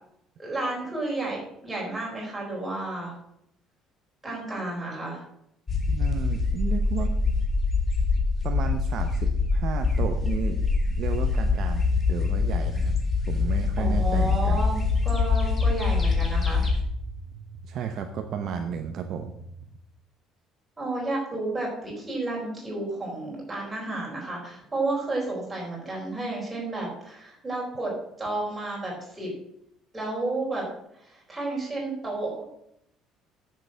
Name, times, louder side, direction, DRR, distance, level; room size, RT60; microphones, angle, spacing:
voice 1, 0.4-3.1 4.2-5.2 13.8-14.8 15.0-16.6 20.8-27.9 28.2-29.3 29.9-30.6 30.9-32.6, right 2 dB, 10° right, -4 dB, 4.3 m, -31 dB
sound 1, 5.7-16.8, left 4 dB, 20° left, 1.7 m, -24 dB
voice 2, 5.9-7.1 8.4-10.6 10.9-12.9 13.3-14.6 17.7-19.3, right 7 dB, 45° right, 5 dB, 0.8 m, -33 dB
sound 2, 12.2-19.6, right 5 dB, 90° right, 1.4 m, -44 dB
10.0 x 6.7 x 6.3 m, 0.76 s
cardioid pair, 170°, 0 cm